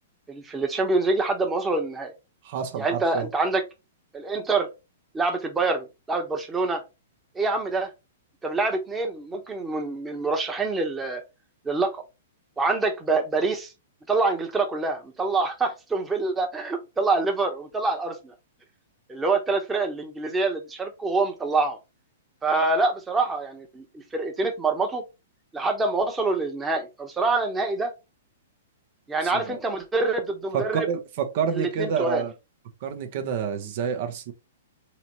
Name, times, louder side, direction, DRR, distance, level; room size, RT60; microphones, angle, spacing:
voice 1, 0.3-2.1 2.8-3.6 4.1-4.7 5.1-6.8 7.3-7.9 8.4-11.2 11.6-12.0 12.6-13.7 14.1-18.3 19.1-21.8 22.4-25.0 25.5-27.9 29.1-30.9 31.5-32.2, right 3 dB, 15° right, 1.0 m, -26 dB
voice 2, 2.4-3.3 29.2-29.6 30.5-32.3 32.8-34.3, right 7 dB, 55° right, 0.8 m, -28 dB
4.0 x 3.0 x 3.0 m
hypercardioid pair, 120°, 0 cm